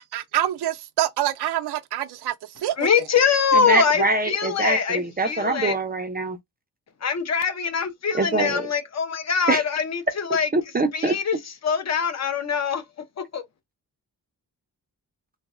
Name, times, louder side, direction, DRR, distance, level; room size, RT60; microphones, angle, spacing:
voice 1, 0.1-2.3 2.6-2.9, right 12 dB, 90° right, 0.5 m, -26 dB
voice 2, 2.8-5.8 7.0-10.5 10.9-12.8 13.2-13.4, left 6 dB, 45° left, 0.7 m, -23 dB
voice 3, 3.5-6.4 8.1-8.7 9.5-9.6 10.5-11.2, right 3 dB, 25° right, 0.4 m, -24 dB
3.9 x 2.0 x 2.4 m
wide cardioid pair, 155°, 38 cm